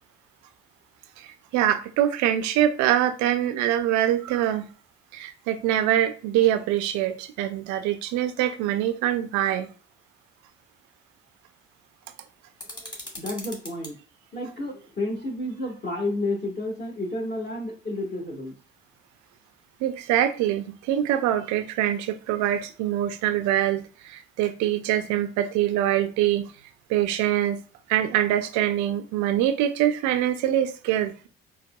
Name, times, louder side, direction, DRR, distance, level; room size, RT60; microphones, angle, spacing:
voice 1, 1.2-4.7 5.1-9.7 19.8-26.5 26.9-27.6 27.9-31.3, right 11 dB, 70° right, 0.5 m, -24 dB
sound 1, 12.6-13.9, left 1 dB, 15° left, 1.6 m, -40 dB
voice 2, 12.7-13.9 14.3-18.5, left 2 dB, 35° left, 1.4 m, -31 dB
4.0 x 2.2 x 2.2 m
hypercardioid pair, 60°, 30 cm